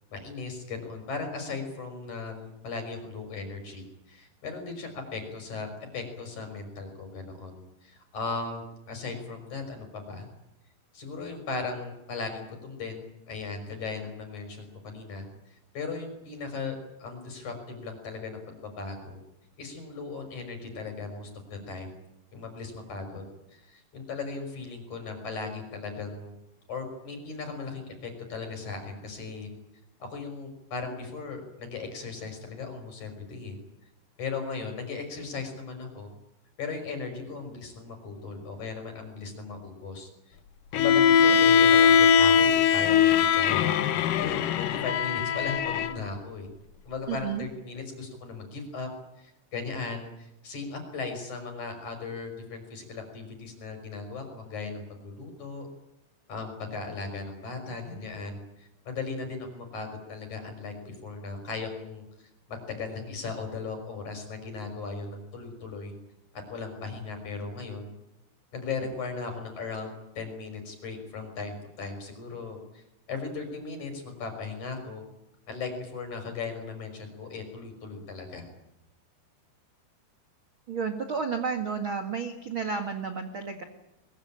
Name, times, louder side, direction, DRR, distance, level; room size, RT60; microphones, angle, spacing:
voice 1, 0.1-5.7 5.9-10.3 10.9-19.2 19.6-21.9 22.3-23.2 23.5-26.3 26.7-29.5 30.0-33.6 34.2-36.1 36.6-40.4 40.7-43.5 44.2-46.5 46.8-48.9 49.2-55.7 56.3-62.0 62.5-65.9 66.5-67.9 68.5-72.8 73.1-75.0 75.5-78.5, left 4 dB, 40° left, 5 dB, 6.8 m, -37 dB
Bowed string instrument, 40.7-46.0, left 7 dB, 70° left, 2.2 m, -21 dB
voice 2, 47.1-47.5 80.7-83.6, right 6 dB, 45° right, 5 dB, 1.7 m, -31 dB
23.0 x 22.5 x 8.9 m, 0.91 s
omnidirectional pair, 5.1 m